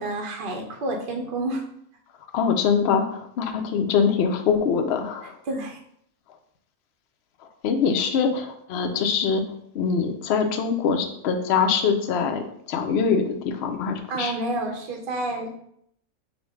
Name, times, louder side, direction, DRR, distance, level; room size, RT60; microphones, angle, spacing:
voice 1, 0.0-1.6 5.5-5.8 14.1-15.5, right 2 dB, 50° right, 2 dB, 0.6 m, -29 dB
voice 2, 2.3-5.4 7.6-9.4 9.7-14.3, left 6 dB, 65° left, 4 dB, 0.6 m, -23 dB
5.0 x 2.1 x 4.7 m, 0.71 s
omnidirectional pair, 1.5 m